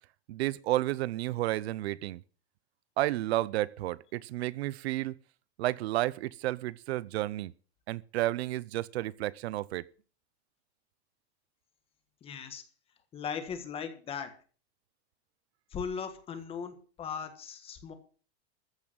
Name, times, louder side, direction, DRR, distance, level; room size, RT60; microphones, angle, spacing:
voice 1, 0.3-2.2 3.0-5.1 5.6-7.5 7.9-9.8, right 16 dB, 90° right, 0.7 m, -31 dB
voice 2, 12.2-12.6 13.1-14.3 15.7-17.9, left 6 dB, 20° left, 1.6 m, -38 dB
14.5 x 6.0 x 8.8 m
supercardioid pair, 175°, 31 cm